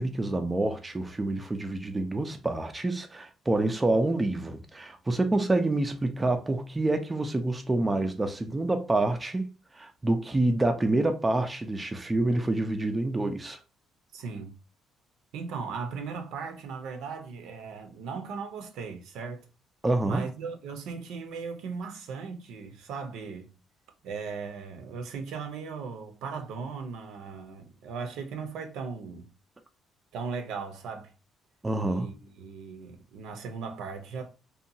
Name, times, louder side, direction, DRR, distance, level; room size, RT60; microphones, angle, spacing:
voice 1, 0.0-9.5 9.8-13.6 19.8-20.2 31.6-32.1, right 2 dB, 15° right, 0.3 m, -27 dB
voice 2, 14.1-14.5 15.3-19.4 20.1-23.5 24.0-29.3 30.1-31.1 31.8-34.3, right 5 dB, 80° right, 0.6 m, -37 dB
2.8 x 2.2 x 2.6 m
cardioid pair, 125°, 0 cm